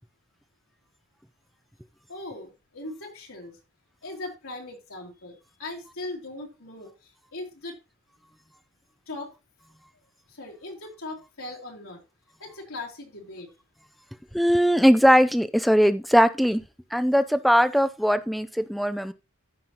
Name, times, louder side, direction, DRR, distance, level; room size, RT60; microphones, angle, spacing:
voice 1, 2.1-3.6 4.0-6.9 7.3-7.8 9.1-9.3 10.3-12.0 12.4-13.5, left 2 dB, 80° left, 2.9 m, -39 dB
voice 2, 14.3-16.6 16.9-19.1, equal, ahead, 0.4 m, -20 dB
14.0 x 5.5 x 2.9 m
head